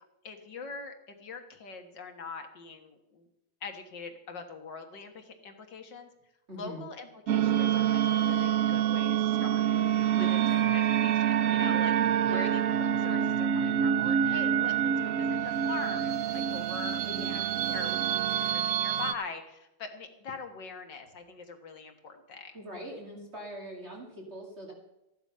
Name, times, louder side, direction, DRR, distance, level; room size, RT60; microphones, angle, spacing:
voice 1, 0.2-3.3 3.6-6.1 6.5-9.7 10.1-10.4 10.7-22.6, left 4 dB, 65° left, 5 dB, 2.2 m, -43 dB
voice 2, 6.5-6.8 10.1-10.4 12.2-12.4 17.1-17.5 22.5-24.7, equal, 35° right, -1 dB, 2.8 m, -42 dB
sound 1, 7.3-19.1, right 9 dB, 70° right, 0.7 m, -27 dB
15.0 x 11.0 x 5.5 m, 0.89 s
omnidirectional pair, 2.1 m